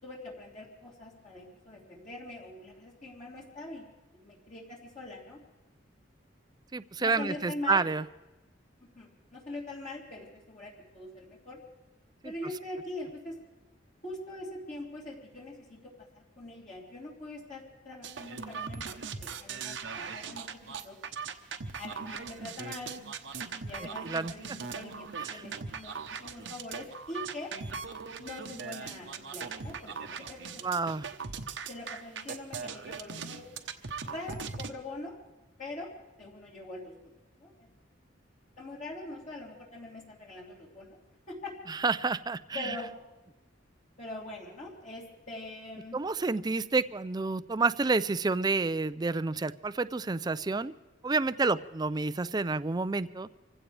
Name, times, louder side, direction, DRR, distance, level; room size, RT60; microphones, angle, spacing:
voice 1, 0.0-3.8 4.1-5.4 7.0-7.9 8.8-11.6 12.2-13.4 14.0-21.0 21.7-23.0 23.5-27.5 28.2-30.6 31.7-33.4 34.0-35.2 35.6-35.9 36.2-37.1 37.4-37.7 38.6-41.0 41.3-41.5 42.5-42.9 44.0-46.0, left 2 dB, 40° left, -4 dB, 3.3 m, -43 dB
voice 2, 6.7-8.0 12.2-12.3 24.0-24.3 25.2-25.4 30.6-31.1 41.7-42.8 45.9-50.7 51.0-53.3, right 3 dB, 20° right, 14 dB, 0.4 m, -29 dB
sound 1, 18.0-34.7, right 5 dB, 75° right, 1.0 m, -40 dB
26.0 x 16.0 x 3.4 m, 1.1 s
head